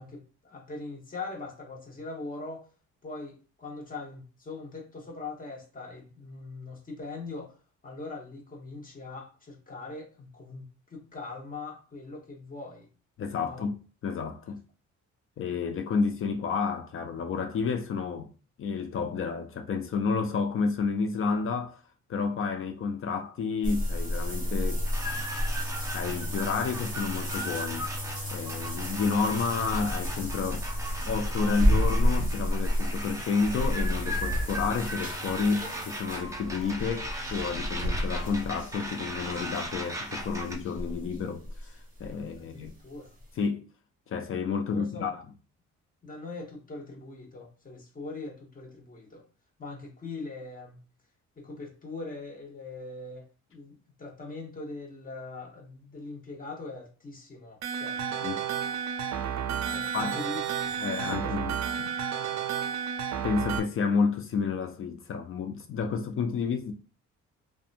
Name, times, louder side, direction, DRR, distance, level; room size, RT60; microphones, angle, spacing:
voice 1, 0.0-2.7 3.0-7.5 7.8-12.9 13.4-13.7 14.4-14.5 42.4-43.2 44.7-45.1 46.0-49.2 49.6-50.8 51.4-58.0 59.7-61.5, left 3 dB, 30° left, 1.0 m, -41 dB
voice 2, 13.2-13.8 14.0-14.6 15.4-18.3 18.6-21.8 22.1-24.9 25.9-27.9 28.3-30.7 31.1-42.7 43.4-43.6 44.1-45.2 58.2-58.4 59.9-60.2 60.8-61.9 63.2-66.7, left 5 dB, 45° left, 0.4 m, -30 dB
sound 1, 23.6-42.3 42.6-42.7 43.2-43.3, equal, 25° right, 1.1 m, -31 dB
sound 2, 24.8-40.5, right 1 dB, 10° right, 0.6 m, -38 dB
sound 3, 57.6-63.6, right 8 dB, 65° right, 0.5 m, -31 dB
2.6 x 2.2 x 2.5 m
cardioid pair, 90°, 30 cm